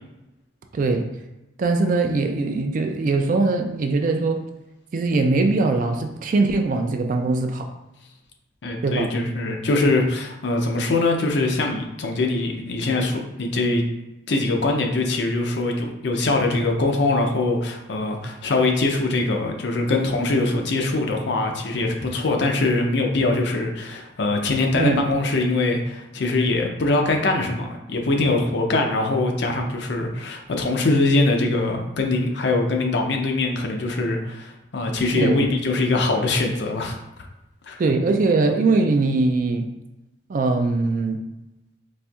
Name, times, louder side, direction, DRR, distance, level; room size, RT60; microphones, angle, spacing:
voice 1, 0.7-1.1 1.6-4.4 4.9-7.7 8.8-9.1 24.7-25.0 28.7-28.9 35.1-35.4 37.8-39.7 40.3-41.2, right 3 dB, 45° right, 4 dB, 0.3 m, -21 dB
voice 2, 8.6-13.8 14.3-37.0 37.7-37.8, left 2 dB, 60° left, 2 dB, 0.5 m, -22 dB
4.2 x 2.5 x 2.3 m, 0.96 s
head